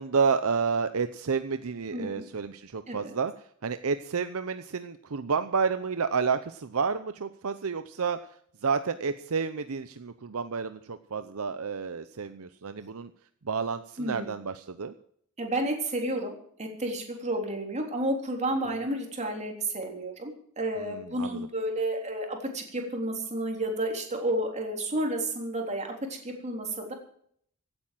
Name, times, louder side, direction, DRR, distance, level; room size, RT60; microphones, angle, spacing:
voice 1, 0.0-3.3 3.6-8.2 8.6-13.1 13.4-14.9 18.7-18.8 20.8-21.5, right 5 dB, 70° right, 11 dB, 0.7 m, -30 dB
voice 2, 1.9-2.3 2.9-3.0 14.0-14.3 15.4-26.9, right 1 dB, 30° right, 2 dB, 3.6 m, -31 dB
16.5 x 8.9 x 7.7 m, 0.64 s
head